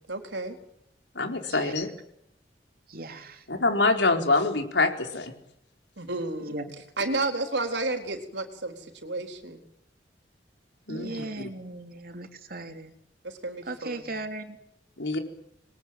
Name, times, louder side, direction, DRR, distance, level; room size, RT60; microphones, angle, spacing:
voice 1, 0.1-0.6 6.0-6.7 7.0-9.6 10.9-11.3 13.2-14.0, right 2 dB, 85° right, 5 dB, 4.2 m, -32 dB
voice 2, 1.1-1.9 3.5-5.3 10.9-11.5 15.0-15.2, left 3 dB, 85° left, 4 dB, 4.4 m, -25 dB
voice 3, 2.9-3.4 6.5-6.6 10.9-12.9 13.6-14.6, right 2 dB, 55° right, 6 dB, 3.4 m, -37 dB
27.0 x 22.5 x 9.0 m, 0.76 s
head